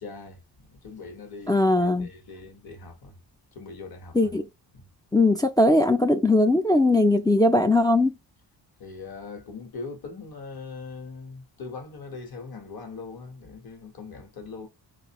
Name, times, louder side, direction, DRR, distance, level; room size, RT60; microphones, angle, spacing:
voice 1, 0.0-3.2 3.5-4.3 4.7-4.9 8.8-14.7, left 4 dB, 60° left, 1.3 m, -41 dB
voice 2, 1.5-2.1 4.1-4.5 5.1-8.1, left 2 dB, 10° left, 0.3 m, -20 dB
4.2 x 2.4 x 2.9 m
cardioid pair, 95°, 42 cm